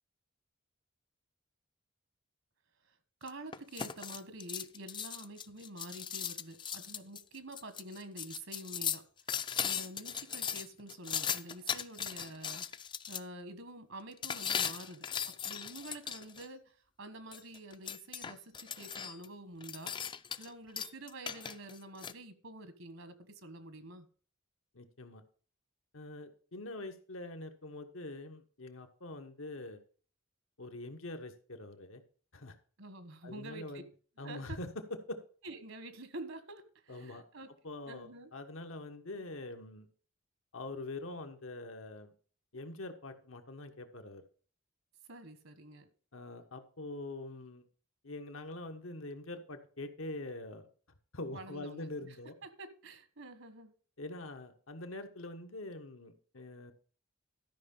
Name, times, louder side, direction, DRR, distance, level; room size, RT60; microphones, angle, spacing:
voice 1, 3.2-9.0 9.6-12.6 13.1-16.7 17.0-20.0 20.4-24.0 32.8-33.8 34.2-34.6 35.4-37.5 37.9-38.3 45.1-45.9 51.3-52.2 52.4-53.7, right 1 dB, 70° right, 1.3 m, -48 dB
sound 1, 3.3-13.2 14.2-16.5 17.3-19.3 19.6-20.5 20.8-22.1, left 7 dB, 25° left, 0.4 m, -38 dB
voice 2, 24.7-25.2 25.9-29.8 30.6-32.0 32.3-32.5 33.2-33.8 34.2-34.7 35.1-35.2 36.9-37.2 37.6-39.9 40.5-42.1 42.5-44.2 46.1-47.6 48.0-50.7 51.1-52.3 54.0-56.7, left 2 dB, 85° left, 1.4 m, -44 dB
13.0 x 5.6 x 5.5 m
head